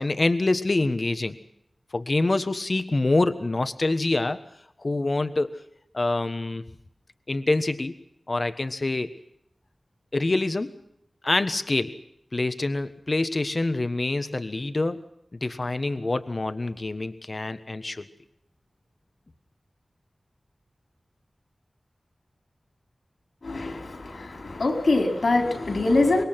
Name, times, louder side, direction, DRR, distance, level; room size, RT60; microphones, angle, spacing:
voice 1, 0.0-1.4 1.9-4.4 4.8-5.6 5.9-6.6 7.3-7.9 8.3-9.1 10.1-10.7 11.2-12.0 12.3-15.0 15.3-18.1, left 2 dB, 45° left, 10 dB, 1.4 m, -26 dB
voice 2, 23.4-26.2, left 2 dB, 75° left, 4 dB, 4.6 m, -24 dB
25.0 x 21.5 x 6.0 m, 0.72 s
wide cardioid pair, 80°, 0 cm